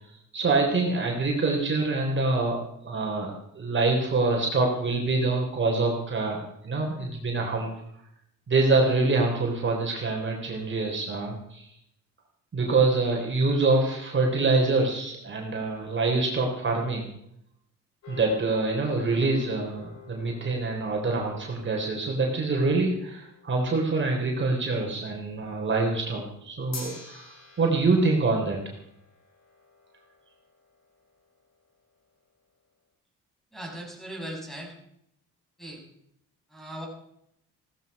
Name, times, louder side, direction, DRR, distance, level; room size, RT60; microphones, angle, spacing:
voice 1, 0.3-7.7 8.5-11.7 12.5-17.1 18.1-27.3 27.6-28.6, right 3 dB, 40° right, 0 dB, 3.6 m, -25 dB
sound 1, 18.0-24.5 26.7-31.2, left 4 dB, 60° left, 6.4 m, -48 dB
voice 2, 33.5-34.7 35.6-35.8 36.5-36.9, right 1 dB, ahead, 0 dB, 6.4 m, -38 dB
16.5 x 14.0 x 5.4 m, 0.75 s
cardioid pair, 90°, 30 cm